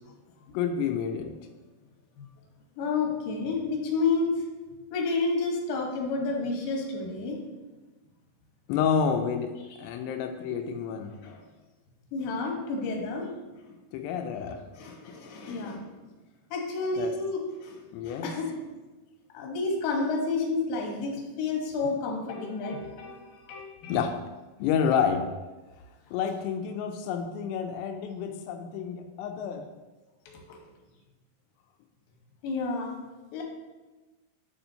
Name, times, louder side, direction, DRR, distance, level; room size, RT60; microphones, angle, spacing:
voice 1, 0.5-1.3 8.7-9.5 9.8-11.1 13.9-14.6 17.0-17.1 17.9-18.3 23.9-24.2 24.6-25.2 26.1-29.7, left 7 dB, 90° left, 5 dB, 2.7 m, -29 dB
voice 2, 2.8-4.4 4.9-7.4 11.2-11.4 12.1-13.3 14.8-15.9 16.5-17.8 18.1-18.5 19.3-24.0 30.3-30.6 32.4-32.9 33.3-33.4, left 3 dB, 65° left, 0 dB, 2.8 m, -30 dB
9.1 x 6.9 x 2.8 m, 1.2 s
omnidirectional pair, 4.8 m